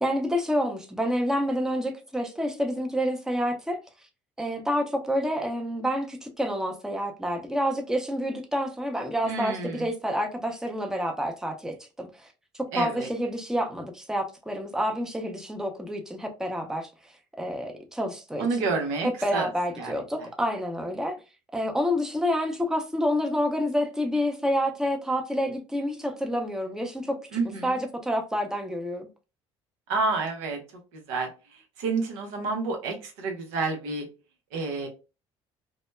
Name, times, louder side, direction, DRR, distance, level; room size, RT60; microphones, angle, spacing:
voice 1, 0.0-3.8 4.4-12.3 12.5-16.9 17.4-18.7 19.0-21.2 21.5-27.3 27.6-29.1, equal, 5° right, 0.6 m, -28 dB
voice 2, 9.2-9.9 12.7-13.1 18.4-19.5 19.8-19.9 20.2-20.3 27.3-27.8 29.9-30.6 30.9-31.3 31.8-34.1 34.5-34.9, right 3 dB, 80° right, 0.7 m, -29 dB
2.2 x 2.0 x 3.1 m
hypercardioid pair, 60°, 13 cm